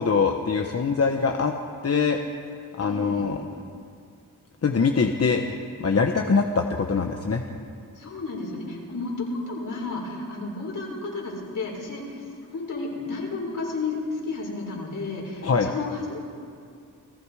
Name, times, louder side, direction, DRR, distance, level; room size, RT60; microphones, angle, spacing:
voice 1, 0.0-1.5 1.8-2.2 2.8-3.5 4.6-7.4 15.4-15.7, left 5 dB, 50° left, 3 dB, 1.3 m, -23 dB
voice 2, 2.8-3.3 7.9-16.2, left 3 dB, 70° left, -2 dB, 6.1 m, -32 dB
29.5 x 20.0 x 5.0 m, 2.4 s
wide cardioid pair, 95°, 32 cm